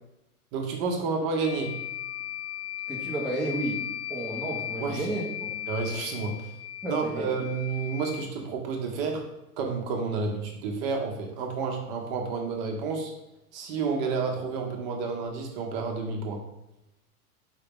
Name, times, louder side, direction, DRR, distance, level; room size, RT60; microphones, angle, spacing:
voice 1, 0.5-1.7 4.8-5.1 5.7-6.5 6.9-9.2 9.6-13.1 13.5-16.4, right 4 dB, 40° right, 1 dB, 0.8 m, -30 dB
sound 1, 1.4-8.2, left 12 dB, 50° left, 1.3 m, -37 dB
voice 2, 2.9-3.8 4.1-5.5 6.8-7.3, right 2 dB, ahead, -7 dB, 0.7 m, -32 dB
4.8 x 2.8 x 3.6 m, 0.92 s
hypercardioid pair, 120°, 46 cm